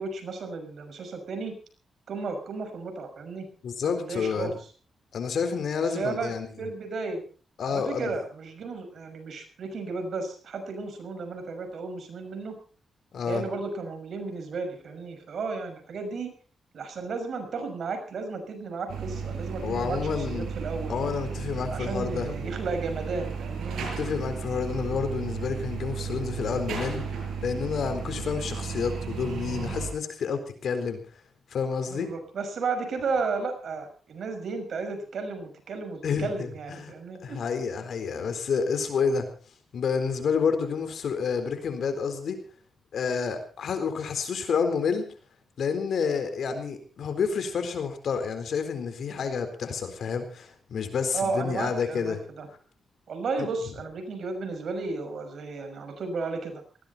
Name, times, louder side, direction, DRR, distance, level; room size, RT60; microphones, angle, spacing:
voice 1, 0.0-1.5 2.1-3.5 3.8-4.6 5.9-7.2 7.7-12.5 13.3-16.3 16.7-20.9 21.7-23.8 31.9-37.4 51.1-52.5 53.1-56.6, right 4 dB, 65° right, 7 dB, 5.9 m, -33 dB
voice 2, 3.6-4.5 5.1-6.7 7.6-8.1 13.1-13.4 19.6-20.5 20.9-22.3 23.8-27.0 27.4-31.0 31.5-32.1 36.0-36.9 37.2-39.3 39.7-42.4 42.9-45.0 45.6-52.2 53.4-53.5, left 6 dB, 70° left, 8 dB, 4.0 m, -29 dB
sound 1, 18.9-29.9, right 6 dB, 85° right, 6.7 m, -34 dB
19.5 x 16.0 x 4.2 m, 0.39 s
cardioid pair, 80°, 0 cm